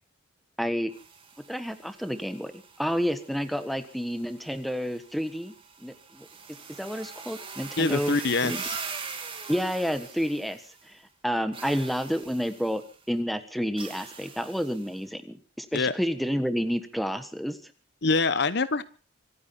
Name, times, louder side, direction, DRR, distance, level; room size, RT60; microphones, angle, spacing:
voice 1, 0.6-0.9 1.5-5.5 5.8-6.3 6.8-8.2 8.4-8.6 9.5-12.8 13.1-17.6, equal, ahead, 10 dB, 1.3 m, -30 dB
sound 1, 0.9-10.9 11.5-12.9 13.8-15.0, right 5 dB, 25° right, 2.6 m, -42 dB
voice 2, 7.8-8.8 15.7-15.9 18.0-18.8, left 3 dB, 55° left, 15 dB, 0.9 m, -25 dB
25.5 x 9.6 x 5.8 m, 0.38 s
head